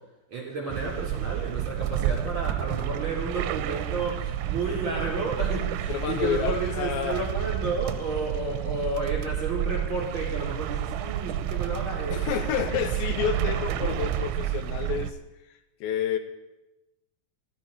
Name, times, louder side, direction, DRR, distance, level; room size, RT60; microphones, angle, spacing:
voice 1, 0.3-12.3, right 3 dB, 30° right, -3 dB, 3.3 m, -32 dB
sound 1, 0.7-15.1, right 10 dB, 80° right, 2.8 m, -30 dB
voice 2, 5.9-7.3 12.1-15.2 15.8-16.2, left 9 dB, 75° left, 8 dB, 2.9 m, -29 dB
16.0 x 12.5 x 4.4 m, 1.0 s
omnidirectional pair, 5.4 m